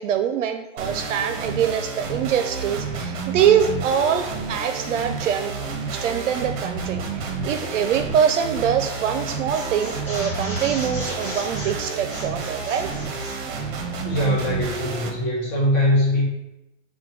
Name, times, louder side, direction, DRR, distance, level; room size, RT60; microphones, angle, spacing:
voice 1, 0.0-5.5 5.9-12.9, right 8 dB, 75° right, 7 dB, 0.5 m, -24 dB
sound 1, 0.8-15.1, right 4 dB, 40° right, 0.8 m, -30 dB
sound 2, 8.7-8.9 9.2-13.4, equal, 5° left, 0.4 m, -37 dB
voice 2, 14.0-16.3, left 1 dB, 35° left, -2 dB, 1.3 m, -21 dB
4.4 x 2.2 x 4.6 m, 0.93 s
hypercardioid pair, 155°, 38 cm